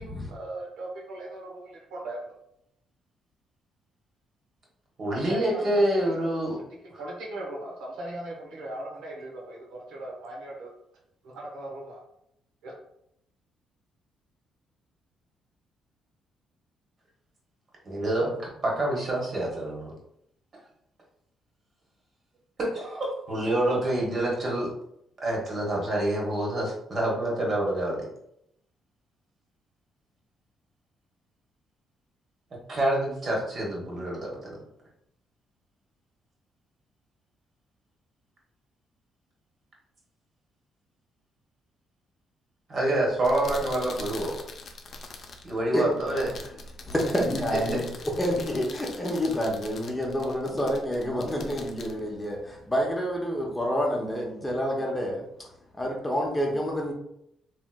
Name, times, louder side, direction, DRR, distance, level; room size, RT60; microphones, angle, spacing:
voice 1, 0.0-2.3 5.1-6.6 7.0-10.7 11.2-12.0 12.6-12.7, right 1 dB, 85° right, -2 dB, 0.8 m, -39 dB
voice 2, 5.0-6.6 6.9-7.0 17.8-18.3 18.6-19.9 22.6-24.7 25.2-28.0 32.7-34.4 42.7-44.3 45.5-46.3, right 1 dB, 45° right, -3 dB, 1.2 m, -27 dB
sound 1, 43.1-52.9, left 2 dB, 55° left, 0.4 m, -43 dB
voice 3, 46.8-47.9 48.2-55.2 55.7-56.9, equal, 15° left, -1 dB, 0.7 m, -28 dB
3.1 x 2.9 x 2.2 m, 0.76 s
cardioid pair, 90°, 0 cm